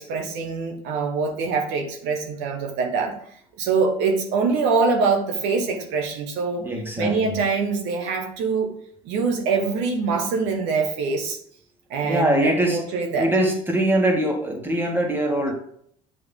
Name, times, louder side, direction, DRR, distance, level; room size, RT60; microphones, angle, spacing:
voice 1, 0.0-3.1 3.6-6.7 7.0-8.7 9.0-11.4 11.9-13.3, right 4 dB, 75° right, 3 dB, 1.1 m, -24 dB
voice 2, 6.6-7.5 12.0-12.8 13.2-15.5, right 1 dB, 10° right, 1 dB, 1.7 m, -22 dB
8.6 x 3.3 x 3.6 m, 0.65 s
supercardioid pair, 95°, 18 cm